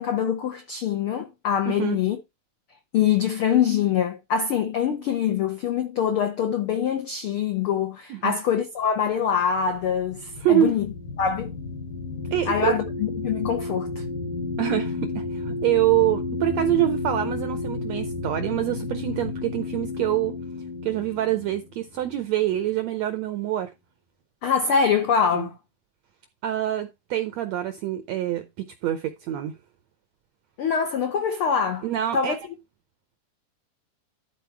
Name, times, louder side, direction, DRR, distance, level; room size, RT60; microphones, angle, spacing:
voice 1, 0.0-2.2 2.9-10.9 11.2-11.5 12.5-13.9 24.4-25.5 30.6-31.9 32.1-32.4, left 7 dB, 85° left, 1.2 m, -24 dB
voice 2, 1.7-2.0 8.1-8.4 10.4-10.7 12.3-12.7 14.6-20.4 20.8-23.7 25.3-25.5 26.4-29.6 31.8-32.4, right 13 dB, 80° right, 1.5 m, -25 dB
sound 1, 9.2-22.9, left 3 dB, 70° left, 3.0 m, -32 dB
12.5 x 4.3 x 4.5 m
omnidirectional pair, 4.0 m